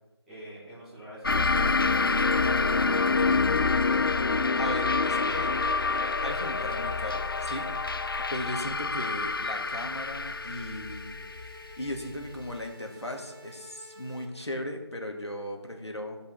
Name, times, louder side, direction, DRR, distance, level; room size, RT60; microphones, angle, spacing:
voice 1, 0.3-1.8 2.1-3.5, right 1 dB, ahead, -15 dB, 1.8 m, -46 dB
sound 1, 1.2-12.4, left 4 dB, 55° left, 0.4 m, -27 dB
voice 2, 4.6-5.5 6.2-7.7 8.0-16.2, left 1 dB, 85° left, 2 dB, 1.9 m, -37 dB
sound 2, 5.3-14.3, left 1 dB, 50° right, 1.4 m, -50 dB
15.0 x 5.5 x 4.0 m, 1.1 s
figure-of-eight pair, 165°, 14 cm